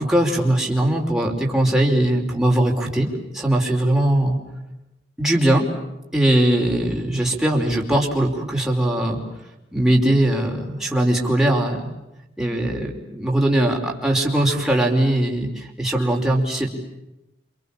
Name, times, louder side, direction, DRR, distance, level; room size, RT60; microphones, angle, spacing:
voice 1, 0.0-4.4 5.2-5.7 6.1-9.2 9.7-11.9 12.4-16.7, right 1 dB, 5° right, -1 dB, 5.1 m, -20 dB
29.5 x 27.0 x 7.4 m, 0.93 s
head